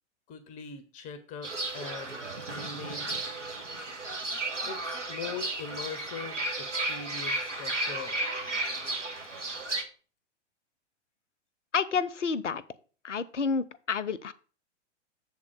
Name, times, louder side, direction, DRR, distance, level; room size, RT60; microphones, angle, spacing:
voice 1, 0.3-3.1 4.7-8.3, left 6 dB, 20° left, 11 dB, 0.6 m, -42 dB
Fowl / Bird, 1.4-9.8, right 2 dB, 85° right, 1.4 m, -34 dB
voice 2, 11.7-12.6 13.0-14.3, left 5 dB, 80° left, 17 dB, 0.6 m, -29 dB
7.2 x 3.7 x 6.2 m, 0.39 s
figure-of-eight pair, 105°, 36 cm